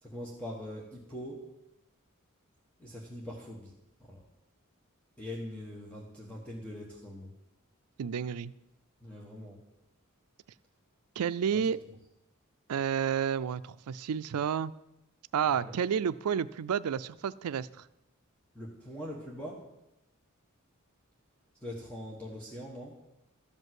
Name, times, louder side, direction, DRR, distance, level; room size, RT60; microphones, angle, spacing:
voice 1, 0.0-1.5 2.8-3.7 4.0-4.2 5.2-7.3 9.0-9.6 11.5-11.7 15.5-15.8 18.5-19.6 21.6-23.0, left 1 dB, 5° left, -3 dB, 1.4 m, -42 dB
voice 2, 8.0-8.5 11.2-11.8 12.7-14.7 15.3-17.8, right 7 dB, 85° right, 16 dB, 0.4 m, -30 dB
13.0 x 5.4 x 7.7 m, 0.88 s
head